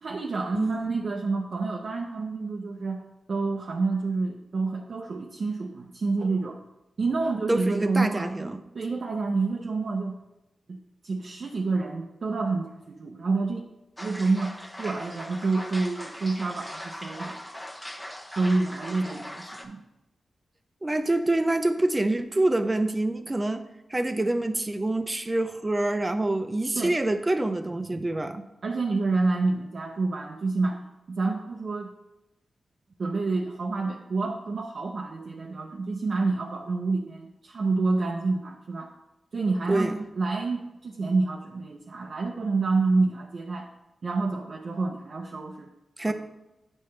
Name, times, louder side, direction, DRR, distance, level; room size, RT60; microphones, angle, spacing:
voice 1, 0.0-3.0 3.3-6.6 7.0-8.3 8.7-10.2 10.7-10.8 11.0-13.7 14.0-17.4 18.4-19.8 26.7-27.0 28.6-30.8 31.1-31.9 33.0-38.9 39.3-43.7 44.0-45.7 46.1-46.2, right 3 dB, 60° right, -1 dB, 0.6 m, -28 dB
voice 2, 0.5-0.9 7.5-8.6 20.8-23.6 23.9-28.4 39.7-40.0 46.0-46.1, right 2 dB, 25° right, 8 dB, 0.6 m, -26 dB
sound 1, 14.0-19.7, equal, 15° left, 0.9 m, -40 dB
8.5 x 5.3 x 3.2 m, 0.94 s
cardioid pair, 60°, 0 cm